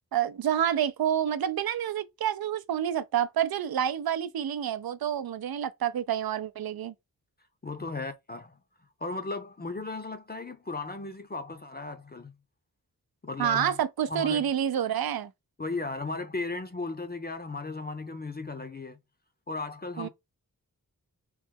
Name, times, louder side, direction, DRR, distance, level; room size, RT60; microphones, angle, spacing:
voice 1, 0.1-6.9 13.4-15.3 20.0-20.1, right 9 dB, 80° right, 0.5 m, -28 dB
voice 2, 7.6-8.6 9.0-12.3 13.2-13.8 14.1-14.5 15.6-19.0 19.5-20.1, left 3 dB, 25° left, 0.5 m, -36 dB
3.1 x 3.0 x 3.5 m
wide cardioid pair, 50°, 36 cm